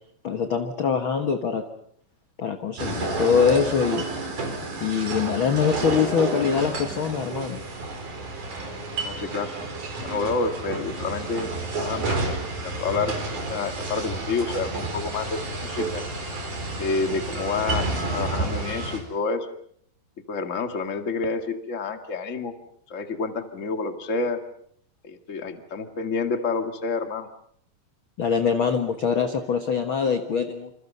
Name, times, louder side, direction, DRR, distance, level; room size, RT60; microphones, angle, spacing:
voice 1, 0.2-1.6 2.4-4.1 4.8-7.6 28.2-30.7, left 6 dB, 50° left, 7 dB, 1.7 m, -23 dB
sound 1, 2.8-19.0, right 2 dB, 60° right, 6.0 m, -30 dB
voice 2, 9.0-9.5 10.0-11.5 11.8-12.4 12.6-16.0 16.8-19.5 20.3-22.5 22.9-24.4 25.0-27.3, left 4 dB, 30° left, 6 dB, 1.7 m, -29 dB
28.0 x 28.0 x 5.6 m, 0.64 s
omnidirectional pair, 4.1 m